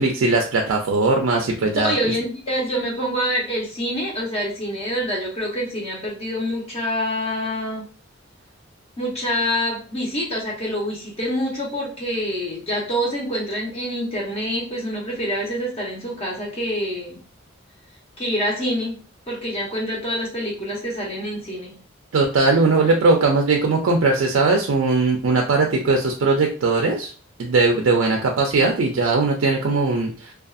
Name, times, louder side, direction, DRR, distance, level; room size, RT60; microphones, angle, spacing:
voice 1, 0.0-2.1 22.1-27.1 27.4-30.3, right 3 dB, 85° right, 1 dB, 0.4 m, -19 dB
voice 2, 1.7-7.9 9.0-17.2 18.2-21.8, equal, 30° left, -3 dB, 0.9 m, -26 dB
2.5 x 2.3 x 2.4 m, 0.38 s
head